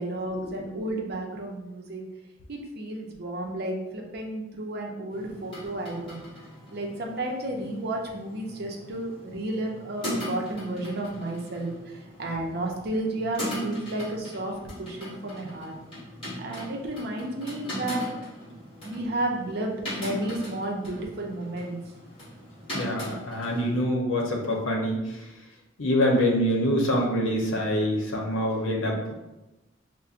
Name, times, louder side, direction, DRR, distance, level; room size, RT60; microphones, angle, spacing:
voice 1, 0.0-2.0 2.5-6.2 6.7-11.7 12.2-14.5 14.8-15.7 16.4-18.0 18.5-18.6 18.8-21.8, right 1 dB, 55° right, 0 dB, 0.6 m, -32 dB
sound 1, 5.1-23.8, equal, 30° left, 1.4 m, -39 dB
voice 2, 22.7-25.3 25.8-29.1, equal, 85° left, -1 dB, 0.8 m, -25 dB
5.4 x 2.1 x 2.5 m, 0.99 s
head